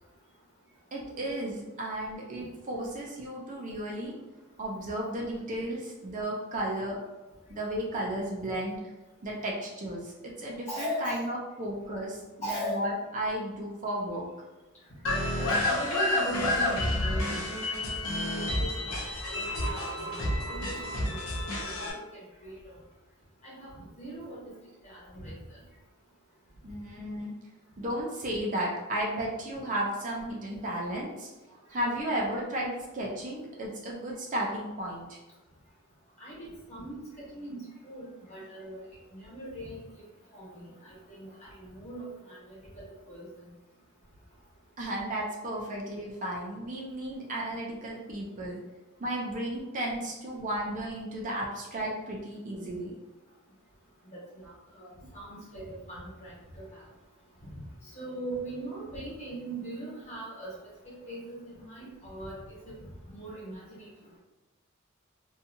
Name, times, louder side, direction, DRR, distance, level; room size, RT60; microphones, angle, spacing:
voice 1, 0.9-4.1 4.6-7.0 7.5-8.8 9.2-12.2 12.5-14.3 26.6-27.3 27.8-31.3 31.7-35.2 44.8-48.6 49.0-52.9, right 1 dB, 35° right, -3 dB, 0.5 m, -34 dB
voice 2, 10.7-11.3 12.4-12.8 15.4-19.0 19.3-20.8 21.1-22.5 23.4-24.4 24.8-25.3 36.2-37.6 37.8-38.8 39.1-39.8 40.3-43.3 54.1-54.5 54.8-56.6 57.4-57.5 57.8-60.5 60.8-62.3 62.6-62.7 63.1-63.9, right 1 dB, 35° left, -8 dB, 1.3 m, -40 dB
sound 1, 15.0-21.9, left 1 dB, 85° left, 0.7 m, -30 dB
2.7 x 2.3 x 2.7 m, 1.1 s
head